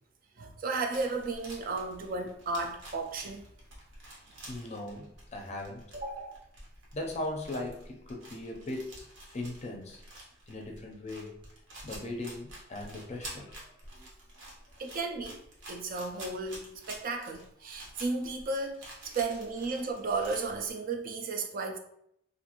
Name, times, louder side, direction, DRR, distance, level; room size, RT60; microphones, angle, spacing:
voice 1, 0.4-3.4 5.9-6.4 14.8-15.4 15.7-21.8, right 3 dB, 50° right, 3 dB, 0.4 m, -34 dB
sound 1, 0.9-20.6, right 1 dB, 75° right, 0.9 m, -49 dB
voice 2, 4.5-5.9 6.9-8.9 9.3-10.0 10.5-11.4 11.8-13.5 13.9-14.1 19.1-19.2, left 2 dB, 35° left, 1 dB, 0.5 m, -38 dB
2.6 x 2.5 x 2.9 m, 0.73 s
head